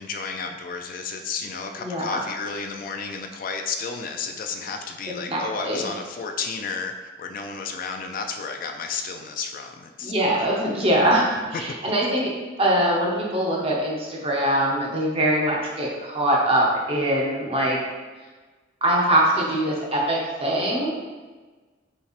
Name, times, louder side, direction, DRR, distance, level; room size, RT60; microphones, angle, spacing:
voice 1, 0.0-10.1 11.5-11.6 19.3-19.4, left 5 dB, 50° left, 4 dB, 0.3 m, -32 dB
voice 2, 1.8-2.2 5.3-5.9 10.0-12.3 12.6-17.8 18.8-20.9, right 1 dB, 30° right, -3 dB, 0.9 m, -22 dB
5.3 x 3.3 x 2.5 m, 1.3 s
head